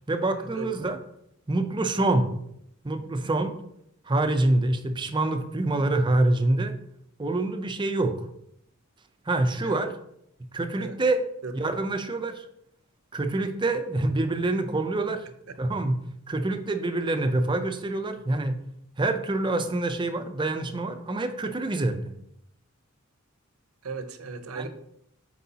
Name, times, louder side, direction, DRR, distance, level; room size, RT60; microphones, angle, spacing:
voice 1, 0.1-1.0 1.5-2.3 2.8-3.5 4.1-6.8 7.2-8.3 9.3-9.9 10.5-11.3 11.5-12.5 13.1-15.3 15.6-16.0 16.3-18.6 19.0-22.1 24.6-24.7, right 2 dB, 20° right, 8 dB, 0.5 m, -26 dB
voice 2, 23.8-24.7, right 4 dB, 85° right, 9 dB, 0.7 m, -36 dB
8.0 x 4.6 x 2.8 m, 0.76 s
head